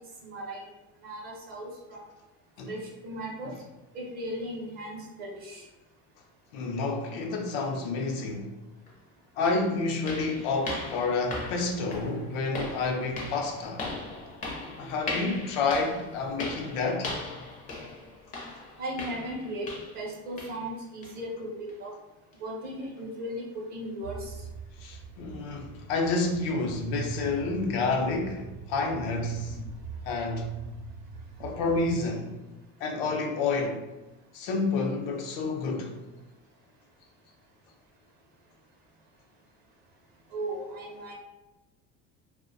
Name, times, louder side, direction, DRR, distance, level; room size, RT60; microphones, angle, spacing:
voice 1, 0.2-0.6 1.0-2.0 2.7-3.5 3.9-5.6 18.8-19.7 19.9-21.9 22.4-24.2 40.3-41.1, right 1 dB, 35° right, 0.5 m, -37 dB
voice 2, 6.5-8.5 9.4-13.8 14.8-17.1 24.8-28.4 28.7-29.6 30.1-30.6 31.4-32.3 32.8-33.8 34.3-35.9, left 3 dB, 90° left, 0.5 m, -29 dB
sound 1, 8.9-9.0 9.4-20.1 20.4-20.7 21.0-21.2 21.7-21.8 22.3-22.4, left 2 dB, 30° left, 0.4 m, -39 dB
sound 2, 24.0-31.9, right 4 dB, 80° right, 0.5 m, -43 dB
2.3 x 2.1 x 2.6 m
cardioid pair, 160°, 29 cm